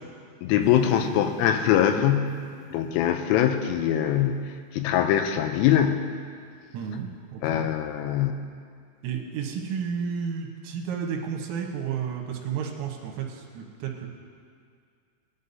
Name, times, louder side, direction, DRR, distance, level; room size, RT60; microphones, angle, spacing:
voice 1, 0.4-2.4 2.7-4.5 4.7-6.1 7.4-8.4, left 10 dB, 85° left, 7 dB, 3.2 m, -23 dB
sound 1, 0.6-4.0 4.3-4.4, left 1 dB, 45° left, 5.1 m, -41 dB
voice 2, 6.7-7.7 9.0-14.1, right 7 dB, 80° right, 1 dB, 3.7 m, -32 dB
19.5 x 11.0 x 2.7 m, 2.1 s
omnidirectional pair, 5.9 m